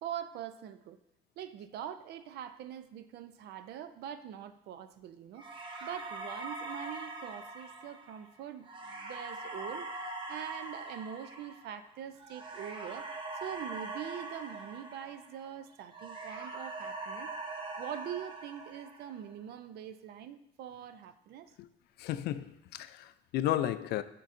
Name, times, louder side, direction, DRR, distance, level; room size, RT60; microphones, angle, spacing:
voice 1, 0.0-1.0 1.4-5.5 5.8-13.1 13.3-17.3 17.8-21.5, right 10 dB, 75° right, 0.5 m, -43 dB
sound 1, 5.4-15.6 15.9-19.3, right 2 dB, 30° right, 0.9 m, -43 dB
voice 2, 22.0-24.0, left 12 dB, 75° left, 0.4 m, -33 dB
10.5 x 3.9 x 2.5 m
cardioid pair, 110°, 17 cm